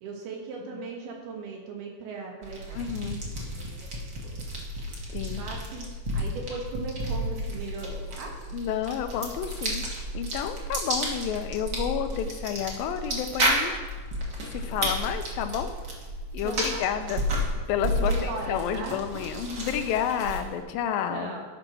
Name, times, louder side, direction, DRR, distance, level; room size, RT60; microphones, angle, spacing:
voice 1, 0.0-3.2 3.4-3.7 4.0-4.4 5.4-5.9 6.1-8.3 16.4-16.8 17.8-19.5 21.1-21.5, right 4 dB, 85° right, 0 dB, 3.5 m, -38 dB
sound 1, 2.4-20.6, equal, 45° right, 1.4 m, -32 dB
voice 2, 2.7-3.2 5.1-5.4 8.5-13.9 14.5-15.7 16.3-17.2 17.7-21.4, left 9 dB, 80° left, 8 dB, 2.3 m, -30 dB
12.5 x 5.0 x 6.1 m, 1.4 s
omnidirectional pair, 4.3 m